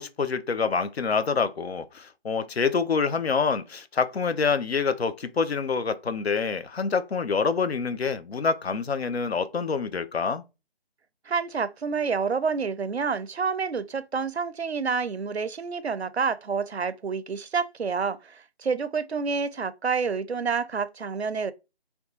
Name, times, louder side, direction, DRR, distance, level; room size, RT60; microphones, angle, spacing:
voice 1, 0.0-10.4, left 5 dB, 75° left, 0.5 m, -26 dB
voice 2, 11.3-21.5, right 5 dB, 85° right, 0.5 m, -28 dB
2.7 x 2.2 x 3.8 m
figure-of-eight pair, 155°, 32 cm